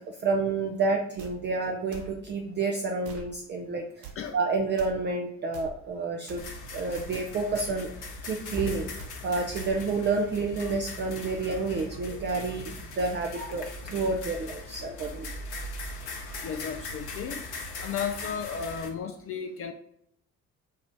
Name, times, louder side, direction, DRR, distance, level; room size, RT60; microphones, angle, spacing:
voice 1, 0.0-4.1 4.3-7.9 8.2-8.9 9.2-15.3, right 3 dB, 25° right, 1 dB, 0.4 m, -29 dB
sound 1, 1.2-1.3 1.9-2.1 3.0-3.3 4.0-4.2 4.8-4.9 5.5-5.7 6.3-6.5 6.9-7.1 7.6-7.8 8.5-8.7 9.0-9.1 9.6-9.7, right 6 dB, 65° right, 0.8 m, -43 dB
sound 2, 6.4-18.9, left 2 dB, 60° left, 0.9 m, -39 dB
voice 2, 16.4-17.4 17.8-19.7, left 7 dB, 35° left, 5 dB, 0.4 m, -34 dB
4.0 x 2.4 x 3.4 m, 0.74 s
figure-of-eight pair, 45°, 43 cm